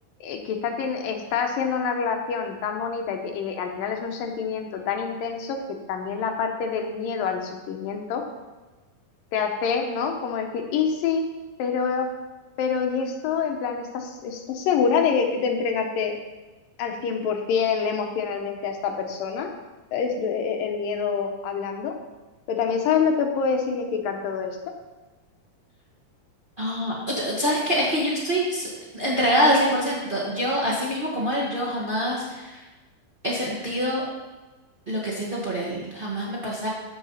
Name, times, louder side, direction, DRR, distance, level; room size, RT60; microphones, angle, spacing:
voice 1, 0.2-5.6 5.9-8.2 9.3-11.2 11.6-12.1 12.6-16.1 16.8-19.5 19.9-21.9 22.5-24.6, left 6 dB, 75° left, 4 dB, 2.5 m, -26 dB
voice 2, 26.6-32.6 33.2-34.0 34.9-36.7, equal, 85° right, -6 dB, 0.4 m, -25 dB
14.5 x 4.9 x 5.6 m, 1.2 s
omnidirectional pair, 4.2 m